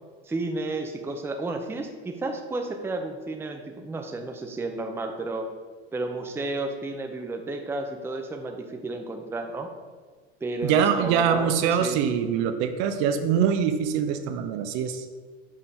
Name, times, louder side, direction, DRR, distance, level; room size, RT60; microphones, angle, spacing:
voice 1, 0.3-5.5 5.9-9.7 10.4-12.0, right 2 dB, 10° right, 4 dB, 0.5 m, -32 dB
voice 2, 10.6-15.1, right 8 dB, 60° right, 8 dB, 0.7 m, -24 dB
6.3 x 3.7 x 4.3 m, 1.5 s
supercardioid pair, 100°, 31 cm